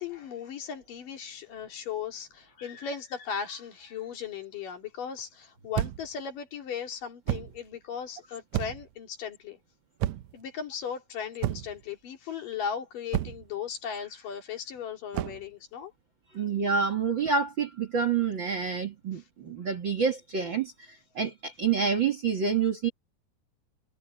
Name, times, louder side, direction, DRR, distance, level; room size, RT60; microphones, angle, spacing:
voice 1, 0.0-9.6 10.3-15.9 16.3-16.4 19.1-19.2, left 7 dB, 70° left, 4.5 m, -37 dB
sound 1, 5.7-6.2 7.3-7.6 8.5-8.9 10.0-10.4 11.4-11.8 13.1-13.5 15.1-15.5, right 13 dB, 85° right, 1.5 m, -31 dB
voice 2, 16.3-20.7 21.2-22.9, right 6 dB, 40° right, 2.1 m, -27 dB
omnidirectional pair, 4.1 m